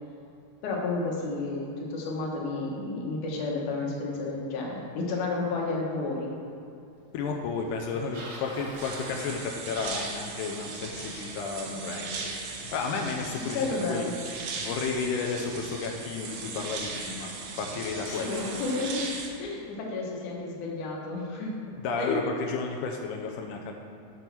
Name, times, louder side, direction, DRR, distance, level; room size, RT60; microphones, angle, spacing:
voice 1, 0.6-6.3 13.5-14.2 18.1-19.1 19.4-21.5 22.0-22.3, left 3 dB, 65° left, -2 dB, 2.4 m, -31 dB
voice 2, 7.1-12.3 12.7-14.1 14.6-18.6 21.8-23.7, left 4 dB, 85° left, 2 dB, 1.8 m, -32 dB
Bicycle, 7.8-10.1 15.2-15.3 16.1-16.2 17.2-17.3 17.5-19.0, right 1 dB, 45° right, 2.1 m, -44 dB
sound 1, 8.8-19.3, right 4 dB, 75° right, 2.5 m, -38 dB
6.8 x 6.2 x 6.0 m, 2.7 s
omnidirectional pair, 4.3 m